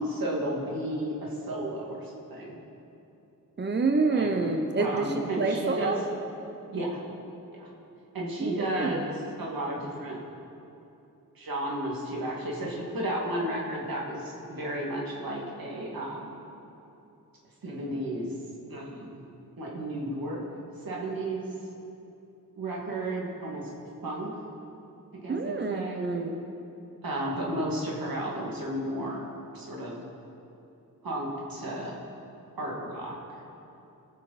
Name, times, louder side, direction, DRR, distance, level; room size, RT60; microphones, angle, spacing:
voice 1, 0.0-2.5 4.1-4.4 4.8-6.0 6.7-7.0 7.6-7.7 8.1-10.2 11.4-16.4 17.6-18.3 18.7-19.2 19.6-20.4 20.8-21.5 22.6-23.7 24.0-24.4 25.1-26.1 27.0-29.3 29.5-30.0 31.0-32.0 32.6-33.4, right 1 dB, 90° right, -3 dB, 2.3 m, -33 dB
voice 2, 3.6-6.0 8.4-9.0 25.3-26.4, right 3 dB, 30° right, 4 dB, 0.8 m, -27 dB
19.0 x 6.5 x 4.2 m, 2.9 s
wide cardioid pair, 100°, 34 cm